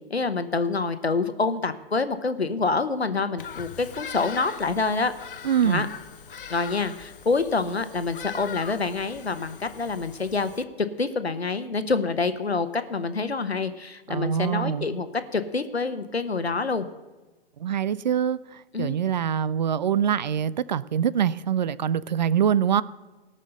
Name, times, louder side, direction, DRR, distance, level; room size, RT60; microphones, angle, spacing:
voice 1, 0.1-5.1 5.6-5.9 6.5-10.6 11.0-15.1 15.3-16.9 18.7-18.9, left 4 dB, 85° left, 11 dB, 1.1 m, -27 dB
Bird vocalization bird call bird song, 3.4-10.6, left 7 dB, 55° left, 0.9 m, -41 dB
voice 2, 5.4-5.9 14.1-14.9 17.6-22.8, right 8 dB, 45° right, 19 dB, 0.4 m, -24 dB
17.0 x 6.6 x 6.7 m, 1.2 s
figure-of-eight pair, 125°, 31 cm